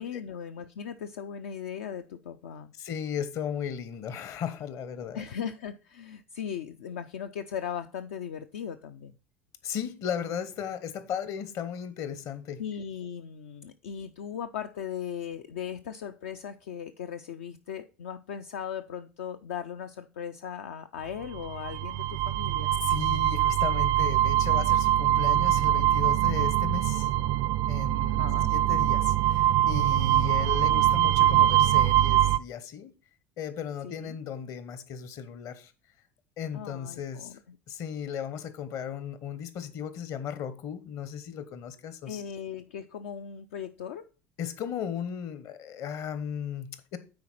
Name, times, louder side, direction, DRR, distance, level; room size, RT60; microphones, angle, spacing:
voice 1, 0.0-2.7 5.1-9.1 12.6-22.7 28.0-28.5 33.8-34.2 36.5-37.3 42.1-44.1, left 8 dB, 70° left, 0.4 m, -38 dB
voice 2, 2.8-5.2 9.6-12.6 22.8-27.1 27.7-32.9 33.4-35.7 36.4-37.4 37.7-42.2 44.4-47.0, left 8 dB, 50° left, 1.0 m, -36 dB
sound 1, 21.3-32.4, right 13 dB, 55° right, 0.4 m, -23 dB
9.5 x 4.3 x 4.1 m
figure-of-eight pair, 65°, 7 cm